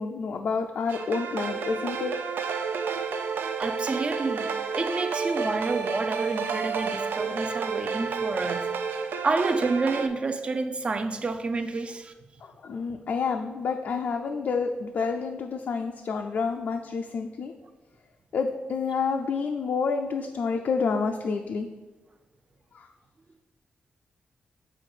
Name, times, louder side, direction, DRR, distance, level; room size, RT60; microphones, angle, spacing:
voice 1, 0.0-2.1 12.6-17.5 18.3-21.7, left 5 dB, 60° left, 3 dB, 0.5 m, -29 dB
sound 1, 0.9-10.1, right 5 dB, 80° right, 0.5 m, -30 dB
voice 2, 3.6-4.5 4.8-8.7 9.2-12.1, right 3 dB, 35° right, 8 dB, 0.5 m, -29 dB
7.6 x 4.4 x 4.8 m, 1.2 s
wide cardioid pair, 145°, 3 cm